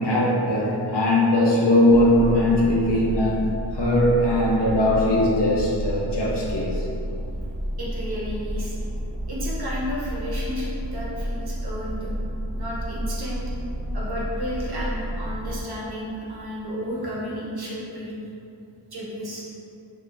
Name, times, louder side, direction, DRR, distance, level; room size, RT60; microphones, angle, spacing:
voice 1, 0.0-3.4 3.7-6.8, left 1 dB, 55° left, -6 dB, 1.0 m, -20 dB
sound 1, 1.9-15.6, equal, 25° left, 1.0 m, -31 dB
voice 2, 7.8-8.8 9.2-12.1 12.5-13.4 13.9-18.1 18.9-19.4, equal, 50° right, -6 dB, 1.0 m, -32 dB
5.0 x 2.8 x 2.6 m, 2.7 s
wide cardioid pair, 95°, 49 cm